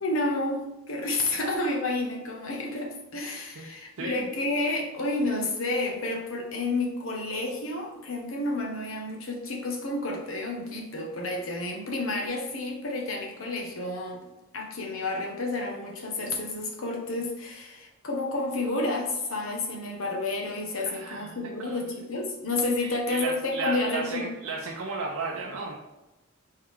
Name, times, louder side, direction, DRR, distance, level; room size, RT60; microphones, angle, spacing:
voice 1, 0.0-14.2 14.5-24.3, left 2 dB, 70° left, 1 dB, 0.9 m, -30 dB
voice 2, 4.0-4.3 20.9-21.8 22.8-25.7, right 4 dB, 75° right, -3 dB, 0.6 m, -34 dB
4.6 x 3.3 x 3.5 m, 0.99 s
head